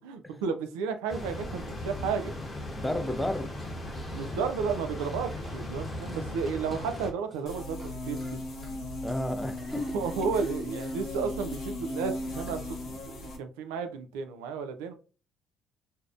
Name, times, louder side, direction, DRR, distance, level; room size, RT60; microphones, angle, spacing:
voice 1, 0.0-2.3 4.1-8.2 9.9-14.9, right 5 dB, 90° right, 0.3 m, -33 dB
sound 1, 1.1-7.1, left 1 dB, 30° left, 0.9 m, -37 dB
voice 2, 2.8-3.7 9.0-10.3, left 1 dB, 10° left, 0.5 m, -32 dB
Fart, 2.9-4.4 4.7-7.9 8.2-11.0, right 1 dB, 20° right, 0.9 m, -53 dB
sound 2, 7.5-13.4, left 1 dB, 70° left, 1.0 m, -37 dB
2.5 x 2.0 x 2.4 m
supercardioid pair, 65°, 0 cm